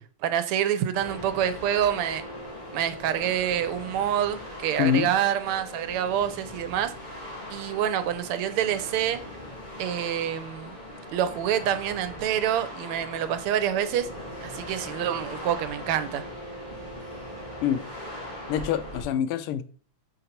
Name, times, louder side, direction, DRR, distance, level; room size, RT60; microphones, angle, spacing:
voice 1, 0.2-2.2 2.7-6.9 7.5-9.2 9.8-10.7 11.1-14.1 14.4-16.2, right 10 dB, 85° right, 1.6 m, -27 dB
sound 1, 0.9-19.0, equal, 20° left, 2.3 m, -40 dB
voice 2, 4.8-5.1 17.6-17.8 18.5-19.6, left 9 dB, 90° left, 1.5 m, -25 dB
7.2 x 3.9 x 4.3 m
omnidirectional pair, 2.4 m